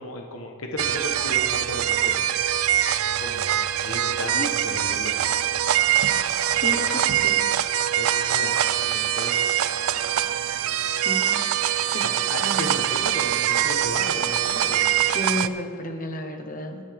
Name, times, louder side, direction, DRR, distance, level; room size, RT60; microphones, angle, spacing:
voice 1, 0.0-2.3 3.2-5.3 6.6-7.1 7.9-9.6 11.7-11.9 12.3-15.0, left 2 dB, 65° left, 2 dB, 1.2 m, -35 dB
sound 1, 0.8-15.5, right 11 dB, 70° right, 0.4 m, -23 dB
voice 2, 6.5-7.5 10.9-11.4 11.9-12.0 12.4-12.7 15.0-16.8, left 1 dB, 40° left, 5 dB, 1.2 m, -32 dB
22.0 x 9.7 x 3.5 m, 2.2 s
head